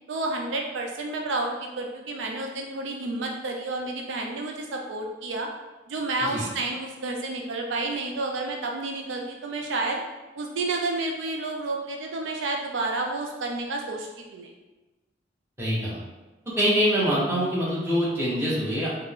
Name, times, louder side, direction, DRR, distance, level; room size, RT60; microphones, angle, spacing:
voice 1, 0.1-5.5 5.9-10.0 10.4-14.5, right 2 dB, 70° right, 1 dB, 0.4 m, -30 dB
voice 2, 15.6-16.0 16.6-18.9, equal, 15° right, -7 dB, 0.9 m, -24 dB
3.9 x 2.1 x 3.6 m, 1.2 s
head